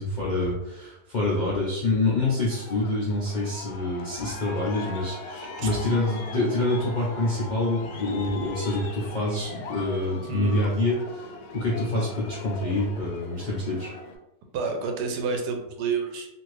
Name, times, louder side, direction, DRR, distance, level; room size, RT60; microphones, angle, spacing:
voice 1, 0.0-13.9, left 2 dB, 65° left, -6 dB, 0.4 m, -26 dB
Aircraft, 2.5-14.2, left 3 dB, 80° left, 1.1 m, -40 dB
voice 2, 10.1-10.6 11.9-12.0 14.5-16.3, right 5 dB, 85° right, 3 dB, 1.2 m, -29 dB
2.7 x 2.5 x 3.1 m, 0.91 s
omnidirectional pair, 1.7 m